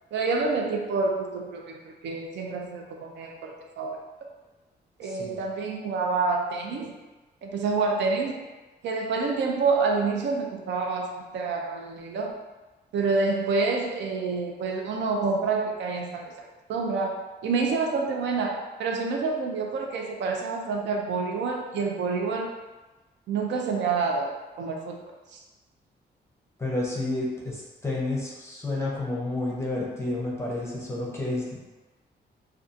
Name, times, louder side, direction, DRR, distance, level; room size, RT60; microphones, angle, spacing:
voice 1, 0.1-4.0 5.0-7.0 7.4-8.4 8.8-12.4 12.9-16.3 16.7-22.5 23.3-24.3 24.6-25.0 25.3-25.4, right 4 dB, 90° right, 1 dB, 0.4 m, -28 dB
voice 2, 5.0-5.4 26.6-31.4, left 2 dB, 15° left, -4 dB, 0.5 m, -30 dB
2.6 x 2.2 x 2.4 m, 1.2 s
wide cardioid pair, 165°, 18 cm